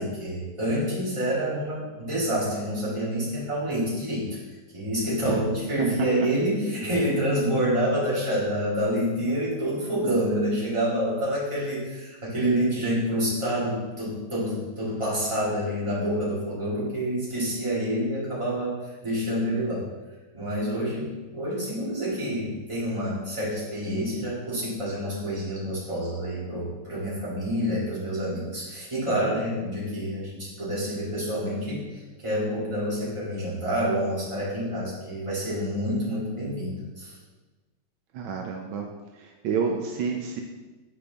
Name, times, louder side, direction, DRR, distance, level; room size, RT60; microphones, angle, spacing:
voice 1, 0.0-4.3 4.7-19.9 20.3-37.1, equal, 15° right, -8 dB, 2.1 m, -28 dB
voice 2, 38.1-38.9 39.2-40.4, right 6 dB, 80° right, 3 dB, 1.4 m, -29 dB
6.9 x 5.0 x 3.4 m, 1.2 s
omnidirectional pair, 2.2 m